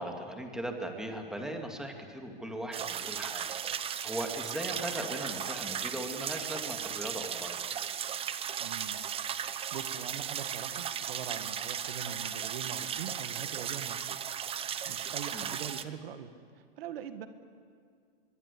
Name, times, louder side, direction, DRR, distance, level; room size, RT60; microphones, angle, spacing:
voice 1, 0.0-7.6 15.3-15.5, right 1 dB, ahead, 3 dB, 2.5 m, -39 dB
sound 1, 2.7-15.8, right 9 dB, 20° right, 0.8 m, -36 dB
voice 2, 8.6-9.0 9.7-14.2 14.5-17.3, right 8 dB, 75° right, 9 dB, 1.8 m, -42 dB
24.0 x 22.5 x 8.5 m, 2.1 s
hypercardioid pair, 135°, 30 cm